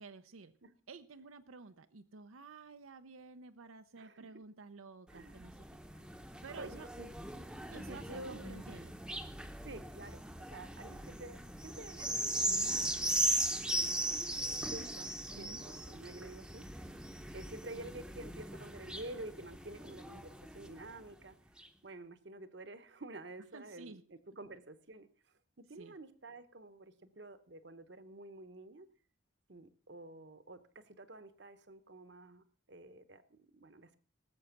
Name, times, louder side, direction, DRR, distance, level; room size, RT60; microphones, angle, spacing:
voice 1, 0.0-0.5 0.9-5.6 6.4-6.9 7.7-9.0 15.3-15.7 23.5-24.0 25.8-26.0, right 4 dB, 85° right, 9 dB, 0.7 m, -52 dB
voice 2, 4.0-4.3 5.1-5.4 5.9-6.1 6.6-7.1 7.9-8.7 9.6-13.3 13.7-17.1 17.3-21.4 21.8-25.1 25.6-28.9 29.5-34.0, right 2 dB, 55° right, 12 dB, 1.0 m, -50 dB
sound 1, 5.1-20.9 21.6-21.7, right 1 dB, 5° right, 0.8 m, -38 dB
18.5 x 7.8 x 5.9 m, 0.42 s
head